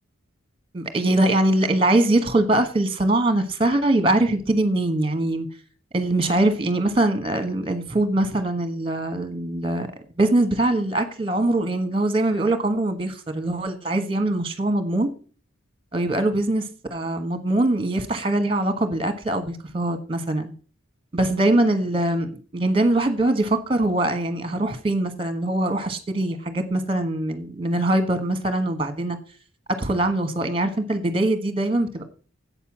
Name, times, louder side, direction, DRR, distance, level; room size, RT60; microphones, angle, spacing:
voice 1, 0.7-5.5 5.9-9.9 10.2-15.1 15.9-16.6 16.9-20.5 21.1-29.2 29.8-32.0, right 1 dB, 25° right, 10 dB, 1.3 m, -22 dB
8.2 x 6.8 x 7.4 m, 0.39 s
head